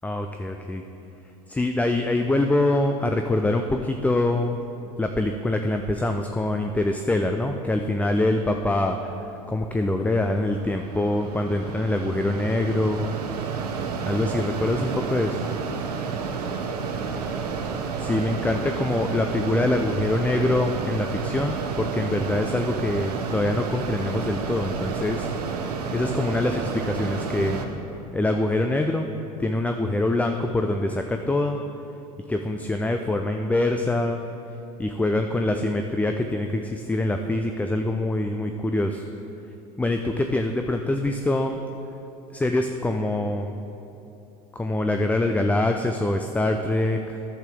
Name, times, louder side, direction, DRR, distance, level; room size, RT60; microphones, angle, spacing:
voice 1, 0.0-0.8 1.5-4.6 5.0-13.1 14.0-15.4 18.0-25.3 25.9-27.6 28.1-29.1 29.4-31.6 32.3-34.2 34.8-39.1 39.8-41.6 42.3-43.6 44.5-47.2, left 2 dB, 5° left, 5 dB, 0.4 m, -24 dB
Mechanisms, 9.7-27.6, right 5 dB, 85° right, 0.7 m, -30 dB
10.5 x 7.9 x 3.5 m, 2.9 s
hypercardioid pair, 80°, 19 cm